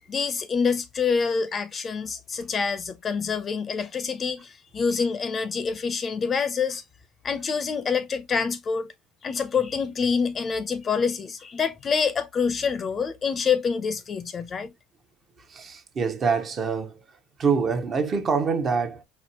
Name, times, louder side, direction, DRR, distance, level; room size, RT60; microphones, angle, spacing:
voice 1, 0.1-6.8 7.2-8.9 9.2-14.7, left 5 dB, 35° left, 0.5 m, -26 dB
voice 2, 15.4-17.0 17.4-19.0, right 5 dB, 40° right, 0.7 m, -25 dB
4.3 x 2.5 x 2.8 m
supercardioid pair, 100°, 0 cm